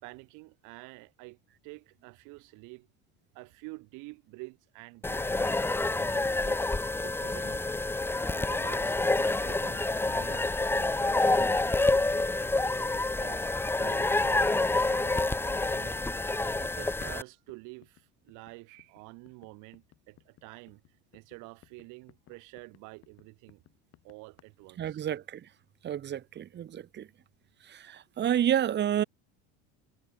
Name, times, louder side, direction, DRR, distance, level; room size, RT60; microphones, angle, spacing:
voice 1, 0.0-2.9 3.3-6.6 7.0-7.8 8.3-12.3 12.6-14.6 14.9-16.0 16.4-20.8 21.1-23.6 24.0-25.0, right 27 dB, 65° right, 4.5 m, -49 dB
sound 1, 5.0-17.2, left 2 dB, 5° left, 0.9 m, -28 dB
sound 2, 10.6-17.2 17.5-24.4, left 14 dB, 50° left, 7.7 m, -60 dB
voice 2, 24.8-25.5 25.8-27.1 27.6-29.0, right 10 dB, 30° right, 1.7 m, -30 dB
supercardioid pair, 125°, 33 cm